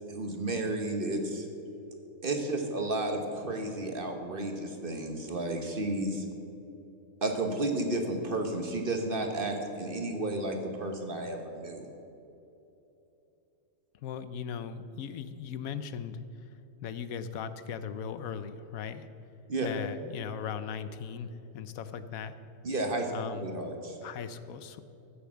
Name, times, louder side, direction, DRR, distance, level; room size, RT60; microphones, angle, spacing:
voice 1, 0.0-1.5 2.2-6.2 7.2-11.9 19.5-19.7 22.6-23.1 23.4-24.0, right 2 dB, 40° right, 4 dB, 1.4 m, -32 dB
voice 2, 14.0-16.2 16.8-19.1 19.6-22.3 23.1-23.5 24.0-24.8, left 7 dB, 80° left, 12 dB, 1.1 m, -38 dB
14.0 x 6.9 x 7.4 m, 2.9 s
omnidirectional pair, 1.5 m